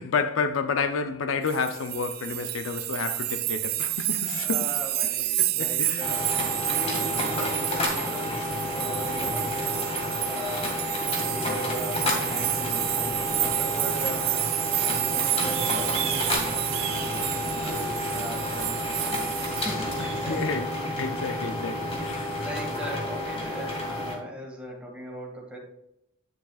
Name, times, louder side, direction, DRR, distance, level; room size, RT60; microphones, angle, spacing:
voice 1, 0.0-4.7 5.4-6.2 20.0-20.7 21.0-22.4, left 5 dB, 70° left, 0.5 m, -30 dB
sound 1, 1.5-19.7, right 16 dB, 50° right, 0.4 m, -30 dB
voice 2, 4.2-6.3 6.5-9.9 10.3-10.8 11.3-14.3 14.8-16.6 17.0-20.5 22.3-25.6, equal, 5° right, 1.8 m, -39 dB
sound 2, 6.0-24.1, left 1 dB, 30° left, 1.8 m, -30 dB
sound 3, 15.4-20.5, right 8 dB, 75° right, 0.9 m, -38 dB
9.1 x 7.5 x 2.3 m
head